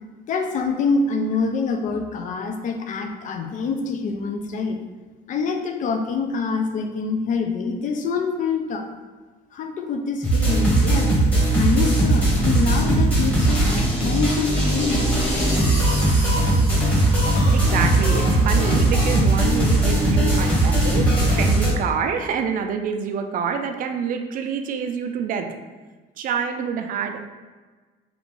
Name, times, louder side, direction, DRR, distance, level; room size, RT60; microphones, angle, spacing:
voice 1, 0.3-4.8 5.3-8.9 9.5-15.1, left 4 dB, 50° left, 5 dB, 0.5 m, -25 dB
sound 1, 10.2-21.7, right 1 dB, 5° left, 1.1 m, -19 dB
voice 2, 17.3-25.5 26.2-27.2, right 6 dB, 55° right, 5 dB, 0.4 m, -27 dB
2.9 x 2.5 x 3.7 m, 1.3 s
cardioid pair, 110°, 17 cm